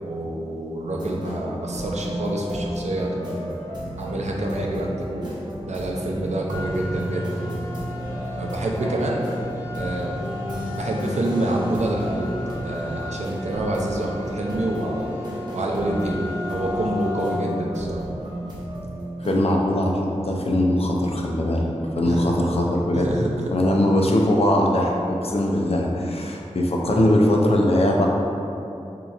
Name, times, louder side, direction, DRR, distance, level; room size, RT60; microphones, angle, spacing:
voice 1, 0.0-3.5 4.0-5.3 5.7-7.7 8.4-9.2 9.8-10.1 10.7-12.3 12.6-15.1 15.5-18.1 22.1-22.3 22.9-23.5, right 1 dB, 70° right, -1 dB, 0.5 m, -27 dB
sound 1, 0.9-19.4, equal, 35° right, 0.9 m, -33 dB
sound 2, 6.5-17.4, left 1 dB, 25° left, 1.2 m, -34 dB
voice 2, 19.2-21.7 22.0-23.1 23.5-28.1, left 1 dB, 55° left, -1 dB, 0.5 m, -21 dB
5.1 x 2.8 x 2.4 m, 2.7 s
wide cardioid pair, 65°, 12 cm